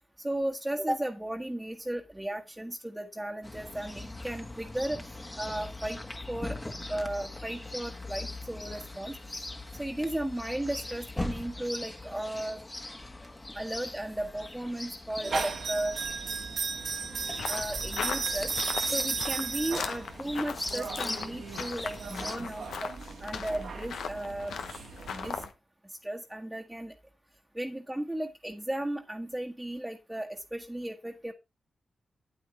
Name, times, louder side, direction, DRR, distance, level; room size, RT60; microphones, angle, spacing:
voice 1, 0.2-5.0 5.4-6.0 6.3-9.2 9.8-12.6 13.5-16.0 17.5-18.5 18.9-22.9 23.2-24.6 25.1-25.4 26.0-26.9 27.5-31.3, right 1 dB, 10° right, 0 dB, 1.4 m, -35 dB
Chirp tweet, 3.4-22.4, left 2 dB, 25° left, 1.5 m, -41 dB
sound 1, 15.2-25.5, right 5 dB, 80° right, 1.7 m, -36 dB
sound 2, 17.3-25.5, left 6 dB, 85° left, 0.9 m, -39 dB
8.7 x 8.5 x 3.2 m, 0.24 s
supercardioid pair, 45°, 0 cm